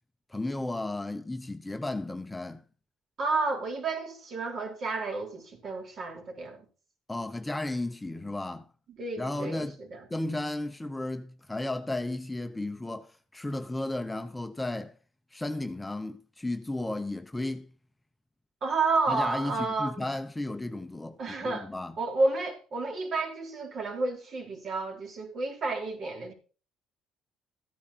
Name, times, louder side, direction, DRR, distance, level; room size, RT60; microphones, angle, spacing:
voice 1, 0.3-2.6 7.1-8.7 9.2-9.8 10.1-15.0 15.3-17.7 19.1-22.0, left 2 dB, 10° left, 0.9 m, -34 dB
voice 2, 3.2-6.7 8.9-10.0 18.6-19.9 21.2-21.7 22.0-26.3, right 3 dB, 50° right, 4.3 m, -31 dB
14.5 x 9.7 x 4.3 m
cardioid pair, 100°, 0 cm